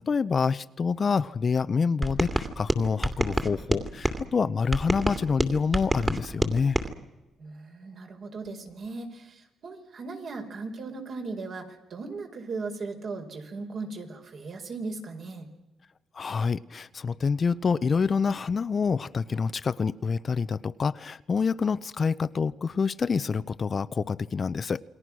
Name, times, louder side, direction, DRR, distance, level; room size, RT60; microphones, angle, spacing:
voice 1, 0.0-6.8 16.1-24.8, left 5 dB, 40° left, 15 dB, 0.8 m, -27 dB
sound 1, 2.0-4.2 4.7-6.9, right 1 dB, 20° right, 2.6 m, -28 dB
voice 2, 7.4-15.5, right 3 dB, 55° right, 4 dB, 5.2 m, -37 dB
28.5 x 22.0 x 6.3 m, 1.0 s
cardioid pair, 90°, 0 cm